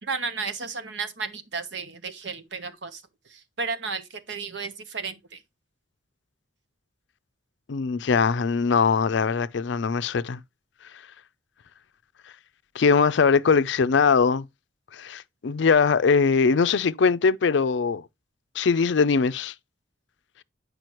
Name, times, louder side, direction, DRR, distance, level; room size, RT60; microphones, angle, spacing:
voice 1, 0.0-3.0 3.3-5.1, right 4 dB, 70° right, 1.0 m, -33 dB
voice 2, 7.7-10.4 12.7-14.5 14.9-18.0 18.6-19.5, left 5 dB, 70° left, 0.4 m, -21 dB
9.2 x 5.0 x 3.0 m
head